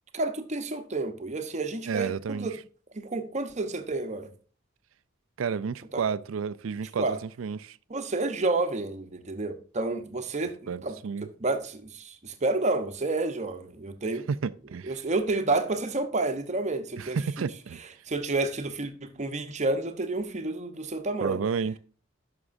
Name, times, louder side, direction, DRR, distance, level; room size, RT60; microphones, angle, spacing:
voice 1, 0.1-2.6 2.9-4.3 5.9-6.0 7.0-7.2 7.9-14.3 14.8-17.2 18.1-21.4, right 2 dB, 35° right, 0.9 m, -30 dB
voice 2, 1.9-2.5 5.4-7.8 10.7-11.3 14.4-15.0 17.0-17.8 21.2-21.8, right 6 dB, 80° right, 0.4 m, -31 dB
11.0 x 6.0 x 2.6 m
head